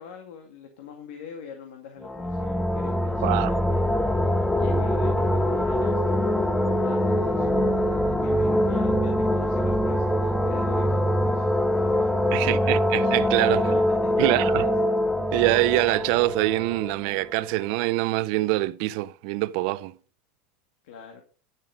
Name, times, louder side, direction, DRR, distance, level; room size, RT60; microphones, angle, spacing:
voice 1, 0.0-4.1 4.6-6.3 6.8-7.8 8.2-12.6 13.5-14.7 15.1-15.3 20.8-21.2, left 7 dB, 80° left, 2.1 m, -43 dB
sound 1, 2.0-17.6, equal, 5° left, 0.7 m, -24 dB
voice 2, 3.2-3.5 12.3-13.6 14.2-14.6 15.3-19.9, right 19 dB, 60° right, 0.5 m, -24 dB
10.5 x 7.2 x 5.1 m
supercardioid pair, 140°, 5 cm